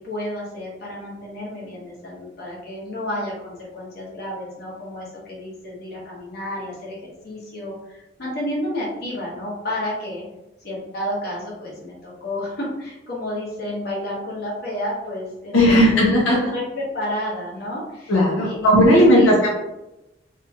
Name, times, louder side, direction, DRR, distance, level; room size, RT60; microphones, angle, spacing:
voice 1, 0.0-10.2 10.6-18.1 18.4-18.8 19.1-19.3, left 1 dB, 55° left, -5 dB, 1.0 m, -31 dB
voice 2, 15.5-16.5 18.1-19.5, equal, 85° left, -4 dB, 0.6 m, -15 dB
2.7 x 2.3 x 2.8 m, 0.94 s
head